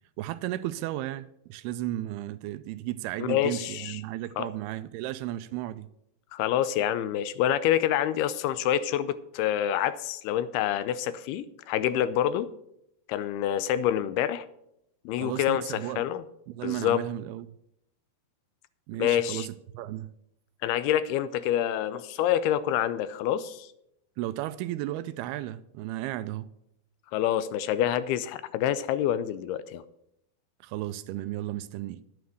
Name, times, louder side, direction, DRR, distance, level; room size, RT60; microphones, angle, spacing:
voice 1, 0.2-5.9 15.1-16.0 16.5-17.5 18.9-20.1 24.2-26.5 30.6-32.0, right 14 dB, 80° right, 2.4 m, -34 dB
voice 2, 3.2-4.0 4.4-4.5 6.3-12.5 13.1-14.5 15.1-16.2 16.6-17.0 19.0-19.5 20.6-23.7 27.1-29.8, left 11 dB, 80° left, 2.4 m, -27 dB
10.5 x 9.3 x 6.3 m
omnidirectional pair, 4.7 m